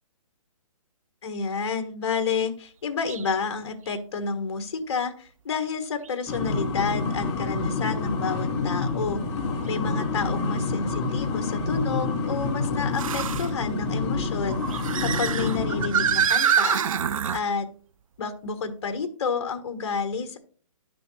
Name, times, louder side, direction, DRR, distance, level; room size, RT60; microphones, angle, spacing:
voice 1, 1.2-9.2 9.7-17.1 17.3-17.7 18.2-20.4, left 5 dB, 50° left, 8 dB, 1.3 m, -30 dB
sound 1, 3.1-3.2 3.9-4.0 6.0-6.1 9.7-9.8 13.0-13.5 14.5-17.4, right 8 dB, 70° right, 0.5 m, -25 dB
sound 2, 6.3-16.3, left 3 dB, 15° left, 0.9 m, -28 dB
11.0 x 6.1 x 3.2 m, 0.42 s
hypercardioid pair, 170°, 18 cm